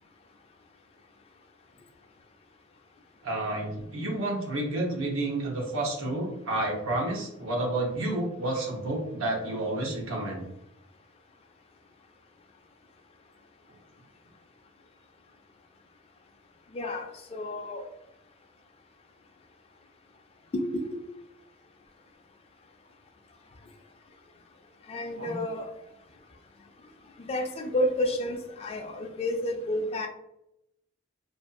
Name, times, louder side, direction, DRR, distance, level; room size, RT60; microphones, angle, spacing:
voice 1, 3.2-10.5 25.2-25.4, right 2 dB, 85° right, -1 dB, 0.8 m, -30 dB
voice 2, 16.7-17.9 20.5-21.0 24.9-25.7 27.2-30.1, left 1 dB, 30° left, 4 dB, 0.3 m, -30 dB
2.5 x 2.3 x 2.5 m, 0.85 s
head